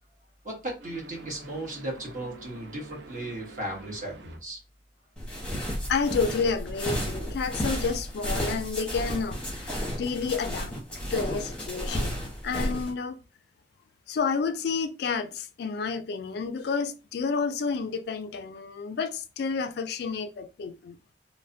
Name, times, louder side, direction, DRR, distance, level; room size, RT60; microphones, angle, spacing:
voice 1, 0.4-4.6, right 1 dB, 45° right, 1.1 m, -36 dB
sound 1, 0.8-4.4, right 2 dB, 65° right, 0.5 m, -47 dB
sound 2, 5.2-12.9, equal, 5° left, 0.8 m, -32 dB
voice 2, 5.9-10.7 11.1-13.2 14.1-21.0, left 5 dB, 65° left, 0.3 m, -30 dB
3.1 x 2.0 x 2.5 m
head